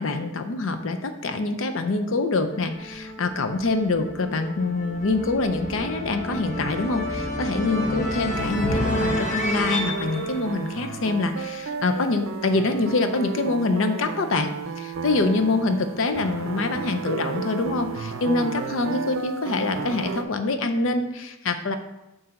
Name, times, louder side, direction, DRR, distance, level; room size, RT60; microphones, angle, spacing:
voice 1, 0.0-14.5 14.8-21.8, left 3 dB, 70° left, 7 dB, 0.6 m, -25 dB
sound 1, 2.5-11.5, left 1 dB, 35° left, 0.8 m, -30 dB
sound 2, 8.3-20.2, right 5 dB, 75° right, 0.5 m, -33 dB
7.5 x 2.7 x 5.8 m, 0.95 s
head